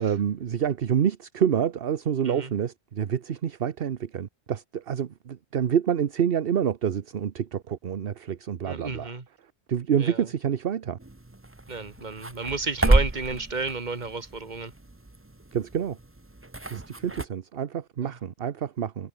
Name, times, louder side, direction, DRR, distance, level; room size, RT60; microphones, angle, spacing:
voice 1, 0.0-9.1 9.7-11.0 15.5-16.0 16.7-19.1, right 8 dB, 60° right, 1.1 m, -27 dB
voice 2, 8.6-9.3 10.0-10.3 11.7-14.7 18.0-18.2, right 4 dB, 40° right, 1.9 m, -32 dB
sound 1, 11.0-17.3, right 2 dB, 10° right, 1.0 m, -29 dB
omnidirectional pair, 1.1 m